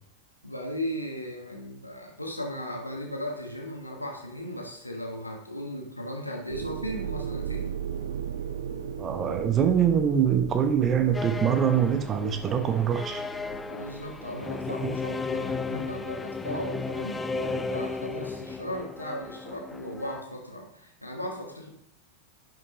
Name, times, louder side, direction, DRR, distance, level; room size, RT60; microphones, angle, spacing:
voice 1, 0.4-7.8 13.7-21.7, equal, 85° left, 0 dB, 1.6 m, -36 dB
sound 1, 6.5-16.3, right 8 dB, 65° right, 0.6 m, -37 dB
voice 2, 9.0-13.2 14.8-14.9 16.4-16.6, right 8 dB, 25° right, 8 dB, 0.9 m, -24 dB
sound 2, 11.1-20.2, left 4 dB, 10° left, 0.4 m, -34 dB
10.5 x 5.8 x 3.1 m, 0.74 s
figure-of-eight pair, 90°, 0 cm